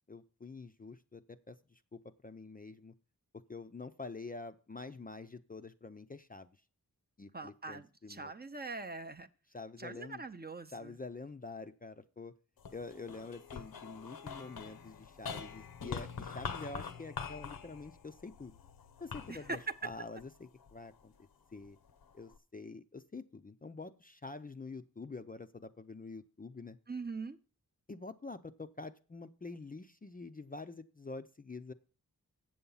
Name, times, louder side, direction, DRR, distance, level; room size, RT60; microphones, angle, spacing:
voice 1, 0.1-2.9 3.5-6.5 7.2-8.3 9.5-10.2 10.7-12.3 12.7-18.5 19.0-21.1 21.5-21.8 22.1-26.8 27.9-31.7, left 3 dB, 25° left, 0.5 m, -47 dB
voice 2, 7.3-9.3 9.8-11.0 19.3-19.7 26.9-27.4, right 3 dB, 25° right, 0.6 m, -42 dB
sound 1, 12.6-21.0 21.6-22.4, left 6 dB, 75° left, 0.8 m, -45 dB
7.7 x 7.1 x 5.5 m
wide cardioid pair, 70°, 36 cm